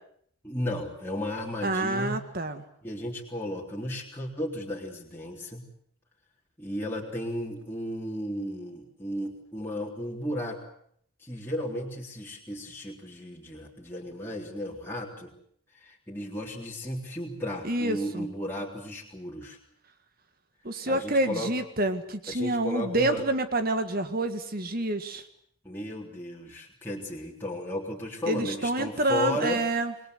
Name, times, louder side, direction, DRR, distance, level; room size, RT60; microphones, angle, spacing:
voice 1, 0.4-2.2 2.8-5.6 6.6-10.6 11.2-15.3 15.7-19.6 20.9-21.5 22.3-23.3 25.6-29.6, left 1 dB, 10° left, -3 dB, 3.7 m, -34 dB
voice 2, 1.6-2.6 17.6-18.3 20.6-25.2 28.3-29.9, right 2 dB, 45° right, 9 dB, 1.9 m, -28 dB
27.0 x 21.5 x 8.1 m, 0.66 s
head